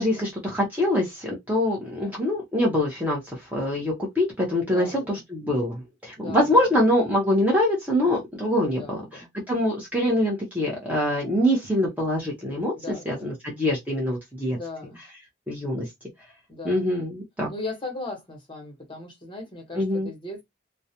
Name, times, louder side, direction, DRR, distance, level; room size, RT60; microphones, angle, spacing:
voice 1, 0.0-9.0 9.5-12.7 13.1-14.6 15.5-15.9 16.6-17.5 19.7-20.1, left 1 dB, 10° right, 0.6 m, -24 dB
voice 2, 4.7-5.2 6.2-6.6 8.7-9.3 12.7-13.4 14.5-15.0 16.5-16.9 17.5-20.4, left 3 dB, 25° left, 1.0 m, -38 dB
2.3 x 2.1 x 2.8 m
head